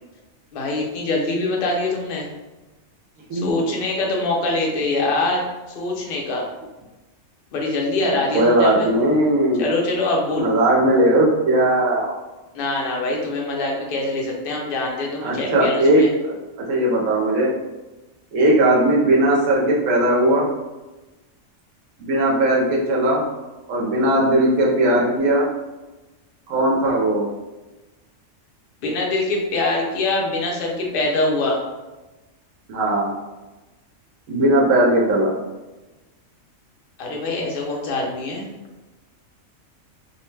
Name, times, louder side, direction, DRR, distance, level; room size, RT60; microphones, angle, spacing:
voice 1, 0.5-2.3 3.3-5.4 5.7-6.5 7.5-8.9 9.6-10.5 12.5-16.1 28.8-31.6 37.0-38.5, left 2 dB, 55° left, -2 dB, 0.6 m, -24 dB
voice 2, 8.0-9.7 10.4-12.1 15.2-16.4 16.7-17.5 18.3-20.5 22.0-23.2 23.7-25.5 26.5-27.3 32.7-33.1 34.3-35.3, right 1 dB, 70° right, -2 dB, 0.9 m, -18 dB
2.6 x 2.1 x 3.1 m, 1.1 s
omnidirectional pair, 1.4 m